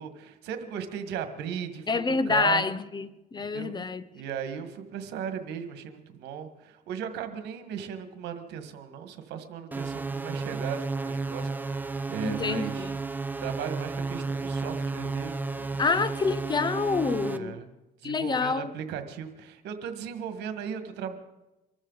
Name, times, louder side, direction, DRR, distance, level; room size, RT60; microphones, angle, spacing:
voice 1, 0.0-1.9 2.3-2.6 3.4-3.8 4.1-12.9 13.4-16.0 17.2-17.7 18.0-21.2, right 8 dB, 85° right, 1.7 m, -37 dB
voice 2, 1.9-4.1 12.2-13.0 15.8-17.6 18.0-18.7, left 4 dB, 25° left, 0.8 m, -27 dB
sound 1, 9.7-17.4, right 3 dB, 10° right, 0.8 m, -33 dB
25.0 x 13.5 x 4.1 m
cardioid pair, 110°, 17 cm